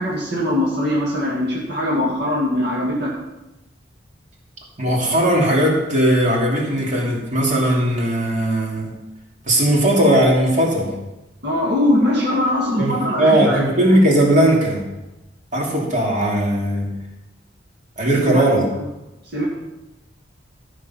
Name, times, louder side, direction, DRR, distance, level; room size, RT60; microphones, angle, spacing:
voice 1, 0.0-3.1 11.4-13.6 18.2-18.5 19.3-19.5, left 1 dB, 65° right, -4 dB, 2.0 m, -21 dB
voice 2, 4.8-8.9 9.5-10.9 12.8-14.8 15.5-16.9 18.0-18.7, right 1 dB, 45° right, -2 dB, 2.8 m, -18 dB
13.0 x 6.5 x 5.8 m, 0.98 s
head